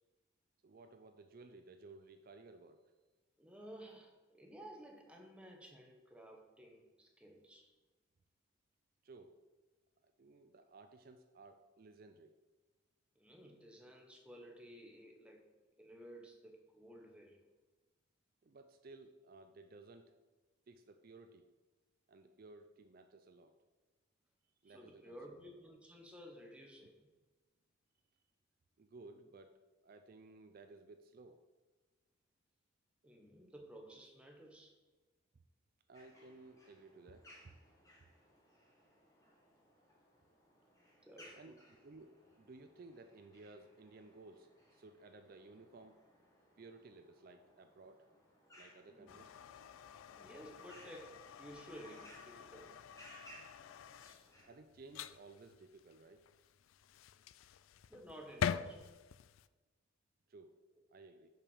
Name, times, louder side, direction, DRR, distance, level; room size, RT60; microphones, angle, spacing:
voice 1, 0.6-2.8 9.0-9.4 10.0-12.3 18.4-20.2 20.7-21.4 22.1-23.5 24.6-25.4 28.8-31.4 35.9-37.6 41.4-42.1 42.4-46.0 46.6-48.1 48.6-49.4 54.3-56.2 60.3-60.6 60.9-61.3, right 3 dB, 45° right, 7 dB, 0.4 m, -57 dB
voice 2, 3.4-7.7 13.1-15.5 15.8-17.4 24.7-27.1 33.0-34.7 41.0-41.6 48.9-49.2 50.1-52.7 57.9-59.0, equal, 5° right, 2 dB, 0.9 m, -55 dB
sound 1, 35.9-54.5, equal, 15° left, 1.6 m, -63 dB
sound 2, 49.1-59.5, left 8 dB, 85° left, 0.3 m, -46 dB
6.5 x 5.7 x 5.4 m, 1.2 s
head